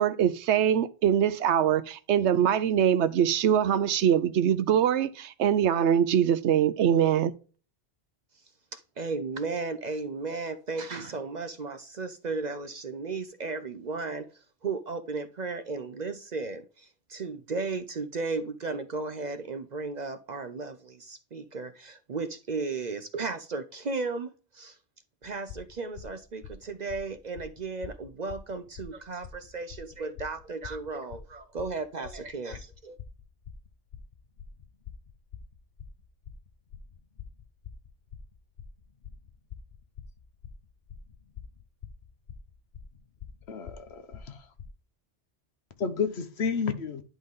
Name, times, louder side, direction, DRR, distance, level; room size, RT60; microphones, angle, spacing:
voice 1, 0.0-7.3, right 9 dB, 75° right, 0.9 m, -23 dB
voice 2, 8.7-24.8 25.2-33.0, right 3 dB, 45° right, 0.6 m, -35 dB
sound 1, 25.2-44.7, left 7 dB, 50° left, 0.8 m, -46 dB
voice 3, 43.5-44.4 45.8-47.0, left 6 dB, 65° left, 1.2 m, -31 dB
11.0 x 3.9 x 3.6 m
omnidirectional pair, 1.2 m